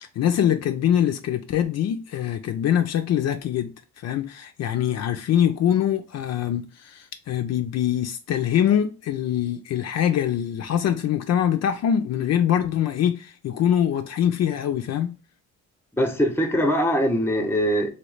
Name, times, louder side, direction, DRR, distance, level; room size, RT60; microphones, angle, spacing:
voice 1, 0.0-3.7 4.0-15.2, left 10 dB, 60° left, 0.4 m, -23 dB
voice 2, 16.0-17.9, equal, 10° left, 0.8 m, -22 dB
3.0 x 2.8 x 3.1 m
cardioid pair, 90°, 30 cm